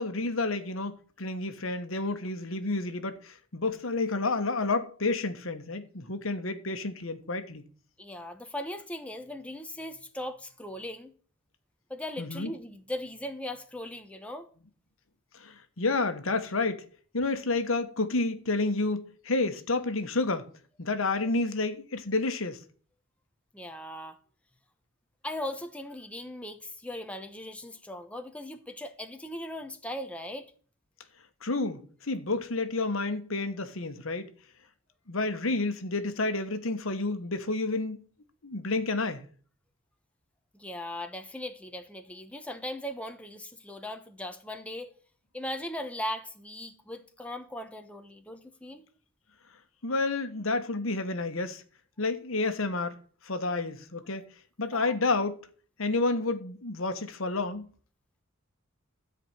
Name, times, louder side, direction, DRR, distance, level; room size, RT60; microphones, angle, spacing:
voice 1, 0.0-7.7 12.2-12.5 15.3-16.8 17.1-20.5 20.8-22.6 31.4-34.3 35.1-38.0 38.4-39.2 49.8-51.6 52.0-53.0 53.2-54.3 54.6-55.4 55.8-57.7, left 3 dB, 80° left, 1.3 m, -30 dB
voice 2, 8.0-11.1 11.9-14.5 23.5-24.2 25.2-30.5 40.5-44.9 45.3-48.9 54.7-54.9, left 1 dB, 5° left, 1.1 m, -39 dB
13.5 x 5.0 x 8.9 m
head